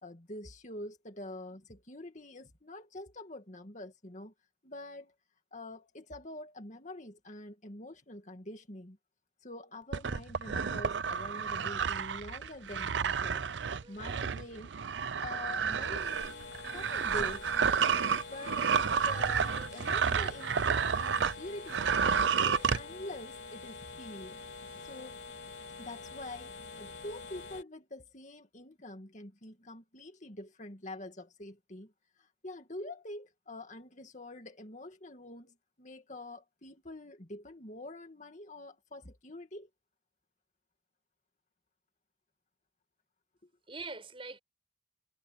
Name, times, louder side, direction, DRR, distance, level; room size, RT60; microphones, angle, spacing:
voice 1, 0.0-4.3 4.6-5.1 5.5-9.0 9.4-13.4 13.9-14.8 15.2-17.9 18.3-18.7 19.0-24.4 24.8-25.2 25.8-39.7, left 1 dB, 40° left, 2.4 m, -46 dB
sound 1, 9.9-21.4 21.7-22.8, right 6 dB, 85° right, 0.6 m, -30 dB
voice 2, 13.8-14.1 19.5-19.9 22.4-22.7 24.7-24.9 43.7-44.4, right 3 dB, 30° right, 6.9 m, -46 dB
sound 2, 15.9-27.6, left 4 dB, 90° left, 3.8 m, -46 dB
head